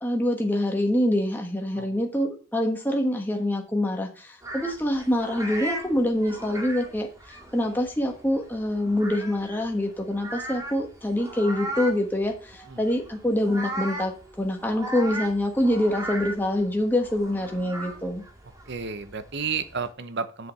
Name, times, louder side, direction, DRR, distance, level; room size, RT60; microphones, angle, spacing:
voice 1, 0.0-18.2, left 1 dB, 10° left, 2 dB, 1.2 m, -25 dB
sound 1, 4.4-19.9, right 1 dB, 15° right, 2.0 m, -38 dB
voice 2, 18.7-20.5, right 5 dB, 50° right, 11 dB, 0.8 m, -32 dB
7.8 x 5.1 x 6.9 m, 0.39 s
head